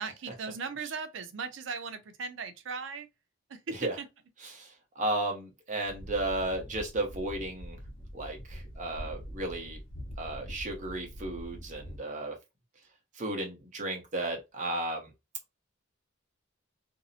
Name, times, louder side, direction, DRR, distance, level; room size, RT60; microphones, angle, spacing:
voice 1, 0.0-3.1 3.5-4.0, right 5 dB, 65° right, 0.5 m, -38 dB
voice 2, 4.4-7.8 8.1-9.8 10.2-12.4 13.2-15.1, right 2 dB, 40° right, 0.8 m, -34 dB
sound 1, 5.8-12.0, equal, 75° left, 0.9 m, -44 dB
2.6 x 2.0 x 2.6 m
head